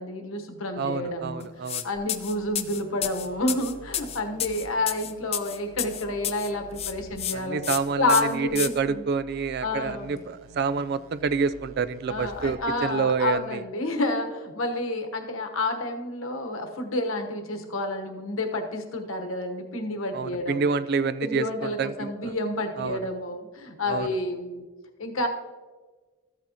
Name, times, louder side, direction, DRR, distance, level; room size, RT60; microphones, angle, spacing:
voice 1, 0.0-1.5 1.8-9.0 9.6-10.2 12.1-20.7 21.2-24.6 25.0-25.3, left 2 dB, 80° left, 4 dB, 1.2 m, -29 dB
voice 2, 0.8-1.9 7.3-13.6 20.1-22.3 22.8-23.0 23.9-24.1, right 5 dB, 50° right, 15 dB, 0.3 m, -28 dB
sound 1, 1.7-1.8 2.1-6.5 6.8-7.3 7.6-7.8 8.1-8.7, left 10 dB, 30° left, 0.4 m, -30 dB
sound 2, 1.9-13.3, right 2 dB, 80° right, 0.9 m, -50 dB
13.5 x 8.3 x 2.9 m, 1.4 s
head